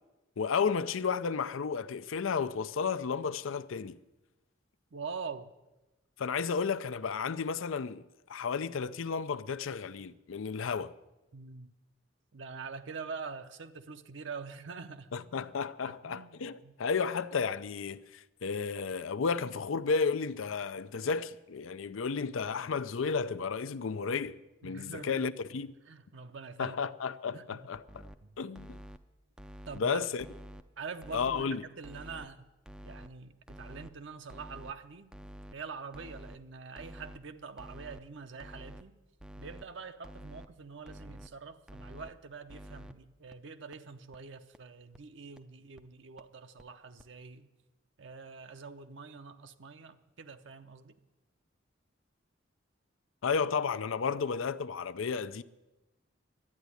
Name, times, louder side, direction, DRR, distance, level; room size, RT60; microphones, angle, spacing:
voice 1, 0.4-4.0 6.2-8.0 8.3-11.0 15.1-25.7 26.6-28.1 28.4-28.8 29.7-30.2 31.1-31.6 53.2-55.4, left 5 dB, 85° left, 0.5 m, -33 dB
voice 2, 4.9-5.5 11.3-11.7 12.3-15.1 15.8-16.8 24.6-25.2 25.9-26.8 27.3-27.6 28.2-28.3 29.7-30.0 30.8-32.5 32.8-35.1 35.5-38.9 39.4-47.5 48.0-50.9, right 5 dB, 65° right, 0.7 m, -45 dB
sound 1, 27.7-28.2 28.5-29.0 29.4-29.8 30.2-30.6 31.0-31.4 31.8-32.3 32.6-33.1 33.5-33.9 34.3-34.7 35.1-35.5 35.9-36.4 36.8-37.2 37.6-38.0 38.4-38.8 39.2-39.6 40.0-40.5 40.9-41.3 41.7-42.1 42.5-42.9 43.3-43.4 43.7-43.8 44.1-44.2 44.5-44.6 44.9-45.0 45.4-45.5 45.8-45.9 46.2-46.3 46.6-46.7 47.0-47.1, equal, 5° right, 0.4 m, -48 dB
12.0 x 9.2 x 9.6 m
head